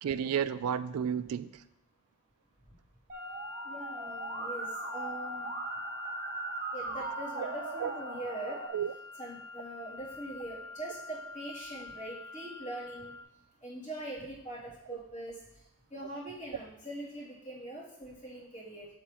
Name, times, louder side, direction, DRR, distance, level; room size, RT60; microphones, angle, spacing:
voice 1, 0.0-1.6 7.4-7.5 7.8-7.9 8.7-8.9, right 8 dB, 80° right, 14 dB, 0.3 m, -32 dB
sound 1, 3.1-13.2, left 3 dB, 10° right, 1.4 m, -44 dB
Musical instrument, 3.1-8.7, right 3 dB, 35° right, 0.8 m, -40 dB
voice 2, 3.6-5.5 6.7-8.6 9.2-13.1 13.6-15.4 15.9-18.9, right 1 dB, 35° left, -8 dB, 2.9 m, -42 dB
7.7 x 7.6 x 3.0 m, 0.80 s
head